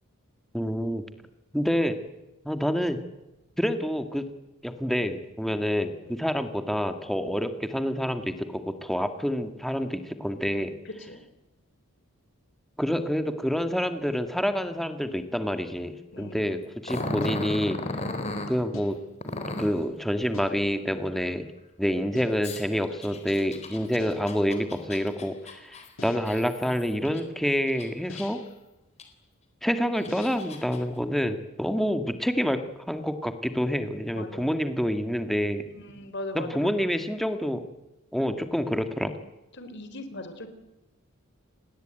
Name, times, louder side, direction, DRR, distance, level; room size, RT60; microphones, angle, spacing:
voice 1, 0.5-1.0 1.5-2.0 2.4-3.0 3.6-4.3 4.6-10.7 12.8-17.8 18.5-19.0 19.6-21.5 21.8-25.8 26.0-28.4 29.6-32.6 32.9-35.6 36.3-37.6 38.1-39.1, equal, ahead, 8 dB, 2.0 m, -27 dB
voice 2, 10.9-11.2 16.1-16.6 34.1-34.5 35.9-36.9 39.6-40.5, left 2 dB, 55° left, 9 dB, 4.0 m, -39 dB
Growling, 16.8-18.5 19.2-19.8 22.4-27.2 27.7-28.5 29.0-29.1 29.8-30.8, left 2 dB, 30° left, 4.0 m, -35 dB
sound 1, 17.2-17.9 18.7-19.4 20.3-20.9 22.1-22.6 24.0-24.5 26.0-26.5 28.1-28.7 30.1-30.6, left 3 dB, 75° left, 1.9 m, -46 dB
29.0 x 20.5 x 9.2 m, 0.99 s
head